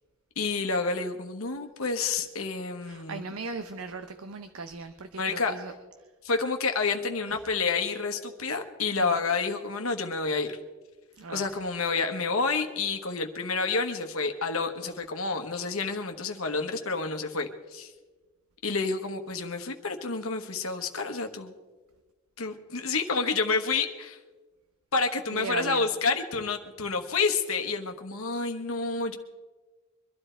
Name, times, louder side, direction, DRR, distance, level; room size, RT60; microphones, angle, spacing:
voice 1, 0.4-3.3 5.2-5.5 6.2-10.6 11.3-17.9 18.6-21.5 22.4-24.2 24.9-29.2, left 4 dB, 75° left, 5 dB, 1.2 m, -29 dB
voice 2, 2.8-5.7 9.0-9.1 11.2-11.6 25.3-25.9, right 3 dB, 80° right, 8 dB, 0.8 m, -38 dB
23.5 x 12.5 x 4.5 m, 1.3 s
head